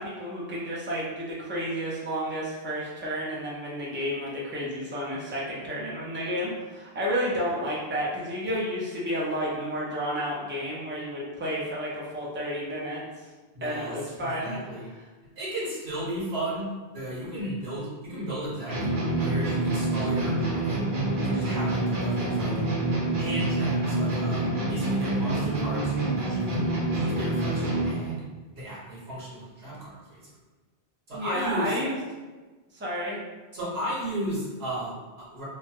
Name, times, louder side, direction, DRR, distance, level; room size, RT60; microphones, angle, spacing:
voice 1, 0.0-13.3 13.6-14.5 31.1-32.0 32.7-33.2, equal, 15° right, -5 dB, 0.4 m, -31 dB
voice 2, 13.5-14.9 15.4-16.7 16.9-18.8 19.1-20.8 21.2-22.5 23.2-28.2 28.5-30.2 31.1-31.7 33.5-35.4, right 1 dB, 80° right, -8 dB, 1.4 m, -35 dB
sound 1, 18.7-28.1, right 2 dB, 55° right, 1.0 m, -27 dB
3.0 x 2.3 x 2.8 m, 1.3 s
omnidirectional pair, 1.0 m